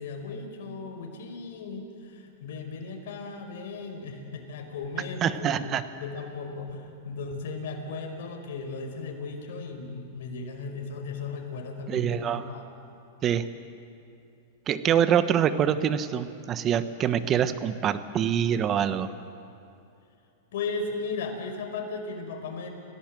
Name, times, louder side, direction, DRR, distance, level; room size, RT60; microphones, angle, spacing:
voice 1, 0.0-5.6 6.0-12.6 20.5-22.7, left 4 dB, 70° left, 3 dB, 4.9 m, -36 dB
voice 2, 5.2-5.8 11.9-12.5 13.2-13.5 14.7-19.1, right 9 dB, 30° right, 12 dB, 1.1 m, -25 dB
30.0 x 17.5 x 7.8 m, 2.7 s
supercardioid pair, 135°, 0 cm